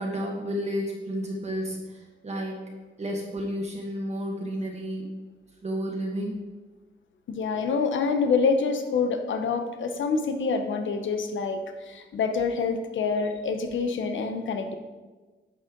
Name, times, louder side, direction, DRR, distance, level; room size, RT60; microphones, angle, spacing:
voice 1, 0.0-2.6 3.0-5.1 5.6-6.4, equal, 35° right, -2 dB, 1.7 m, -31 dB
voice 2, 7.3-14.7, left 5 dB, 85° left, 6 dB, 1.0 m, -26 dB
10.5 x 6.7 x 3.9 m, 1.3 s
wide cardioid pair, 110°, 19 cm